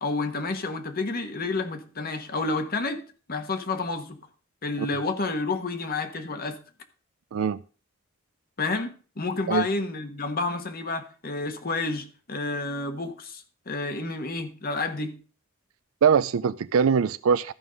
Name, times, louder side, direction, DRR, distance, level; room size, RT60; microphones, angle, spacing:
voice 1, 0.0-3.0 3.3-4.2 4.6-6.6 8.6-15.2, left 3 dB, 50° left, 1.3 m, -30 dB
voice 2, 16.0-17.5, right 6 dB, 90° right, 0.4 m, -22 dB
13.0 x 5.5 x 6.3 m
head